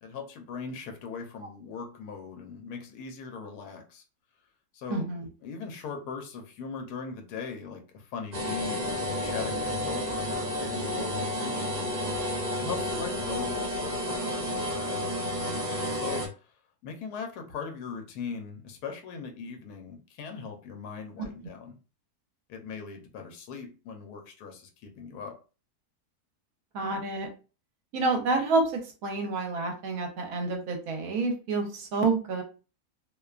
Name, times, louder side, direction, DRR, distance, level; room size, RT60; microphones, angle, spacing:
voice 1, 0.0-4.0 4.7-5.1 5.4-11.6 12.6-15.1 15.9-16.2 16.8-21.8 22.5-25.4, left 5 dB, 80° left, 4 dB, 1.1 m, -39 dB
voice 2, 4.9-5.3 21.2-21.3 26.7-27.3 27.9-32.4, right 3 dB, 70° right, 3 dB, 1.1 m, -28 dB
sound 1, 8.3-16.3, left 1 dB, 45° right, 0.6 m, -31 dB
2.7 x 2.2 x 2.3 m, 0.33 s
omnidirectional pair, 1.7 m